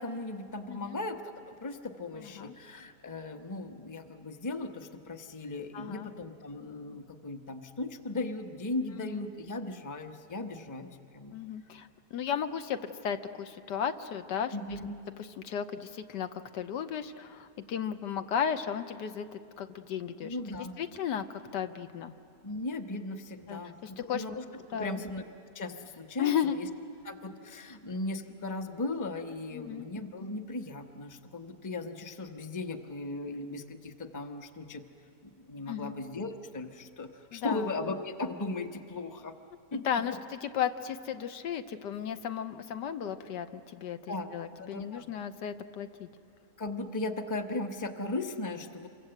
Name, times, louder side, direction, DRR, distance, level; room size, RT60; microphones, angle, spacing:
voice 1, 0.0-11.4 14.5-14.9 20.2-20.7 22.4-24.4 24.7-25.2 25.5-26.7 27.0-34.8 35.2-39.3 39.7-39.8 44.1-44.3 44.6-45.1 46.6-48.9, left 2 dB, 15° left, 6 dB, 0.7 m, -37 dB
voice 2, 0.7-1.0 2.2-2.6 5.7-6.1 9.0-9.2 11.3-14.5 15.4-20.4 20.8-21.3 21.5-22.1 23.5-24.2 24.7-25.0 26.2-26.6 29.5-29.9 35.7-35.9 37.3-37.7 39.7-46.1, left 8 dB, 90° left, 9 dB, 1.5 m, -34 dB
27.5 x 23.5 x 7.9 m, 2.4 s
omnidirectional pair, 1.8 m